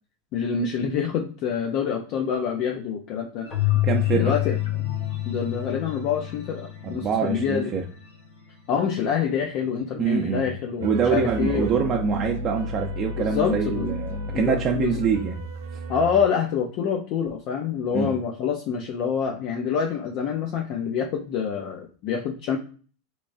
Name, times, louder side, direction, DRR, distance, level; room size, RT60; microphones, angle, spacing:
voice 1, 0.3-3.5 4.1-4.6 5.3-7.7 8.7-11.7 13.2-13.9 14.3-15.0 15.9-22.6, left 7 dB, 55° left, 3 dB, 0.5 m, -26 dB
sound 1, 3.4-10.5, left 4 dB, 85° left, 1.2 m, -43 dB
Keyboard (musical), 3.5-7.0, left 17 dB, 30° left, 0.8 m, -27 dB
voice 2, 3.8-4.3 6.8-7.8 10.0-10.5 10.8-15.4 17.9-18.1, right 6 dB, 35° right, 1 dB, 0.6 m, -25 dB
sound 2, 10.8-16.3, equal, 80° right, 0.7 m, -33 dB
3.6 x 3.0 x 2.6 m, 0.39 s
hypercardioid pair, 110°, 0 cm